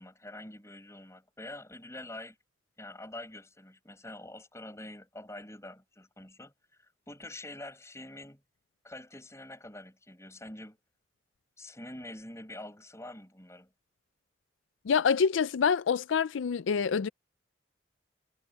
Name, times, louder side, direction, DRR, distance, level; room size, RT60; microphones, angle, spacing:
voice 1, 0.0-2.4 2.8-6.5 6.8-8.4 8.8-10.8 11.6-13.7, left 1 dB, 15° left, 7.4 m, -46 dB
voice 2, 14.9-17.1, left 6 dB, 90° left, 0.4 m, -26 dB
head